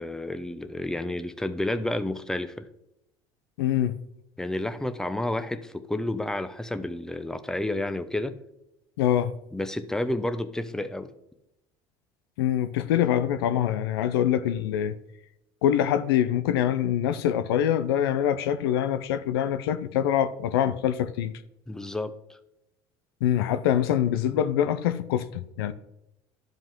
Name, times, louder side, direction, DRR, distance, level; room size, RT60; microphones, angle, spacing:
voice 1, 0.0-2.7 4.4-8.4 9.5-11.1 21.7-22.4, left 1 dB, 5° left, 0.8 m, -30 dB
voice 2, 3.6-4.0 9.0-9.3 12.4-14.9 15.6-21.3 23.2-25.7, left 10 dB, 90° left, 0.6 m, -24 dB
11.5 x 5.3 x 3.6 m
supercardioid pair, 85°, 12 cm